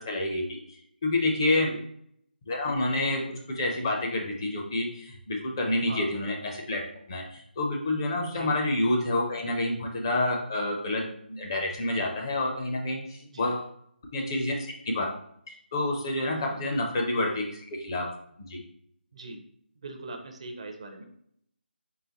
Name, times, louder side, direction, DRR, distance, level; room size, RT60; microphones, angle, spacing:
voice 1, 0.0-1.7 2.5-6.8 7.1-13.7 14.1-15.1 15.5-18.1 18.5-18.6, left 2 dB, 25° left, 0 dB, 0.5 m, -28 dB
voice 2, 13.2-13.5 16.5-16.6 19.1-19.4 19.8-21.0, right 2 dB, 35° right, 4 dB, 0.4 m, -41 dB
3.8 x 3.2 x 2.9 m, 0.68 s
figure-of-eight pair, 170°, 6 cm